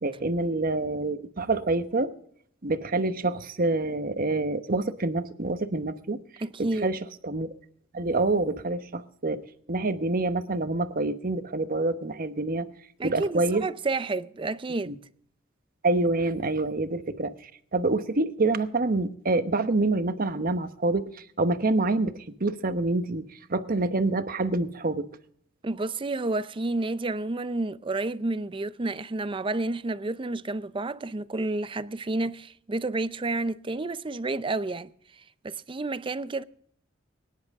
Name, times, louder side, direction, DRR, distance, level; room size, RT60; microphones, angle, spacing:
voice 1, 0.0-2.1 2.6-6.2 6.6-7.0 7.2-7.5 7.9-9.4 9.7-12.7 13.0-13.6 14.9-15.0 15.8-17.3 17.7-21.1 21.4-22.1 22.4-23.2 23.5-25.1, right 2 dB, 45° right, 1.0 m, -26 dB
voice 2, 6.4-7.0 13.0-15.0 25.6-34.9 35.2-36.4, right 2 dB, 25° right, 0.5 m, -30 dB
23.5 x 10.5 x 3.6 m
head